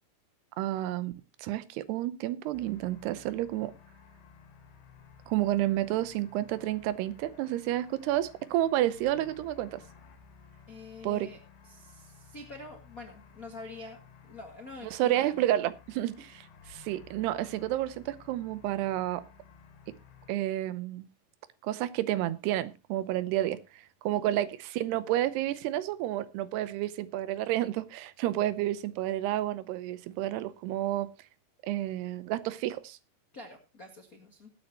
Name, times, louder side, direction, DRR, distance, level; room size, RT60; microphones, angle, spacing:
voice 1, 0.6-1.1 1.4-3.7 5.3-9.8 11.0-11.3 14.8-19.2 20.3-21.1 21.6-31.1 31.6-33.0, right 14 dB, 85° right, 15 dB, 2.9 m, -30 dB
sound 1, 2.5-20.3, left 6 dB, 75° left, 4.1 m, -55 dB
voice 2, 10.7-11.4 11.6-15.5 16.2-16.3 24.1-24.4 33.3-34.5, left 2 dB, 50° left, 2 dB, 1.0 m, -46 dB
21.0 x 8.8 x 2.9 m, 0.27 s
omnidirectional pair, 4.7 m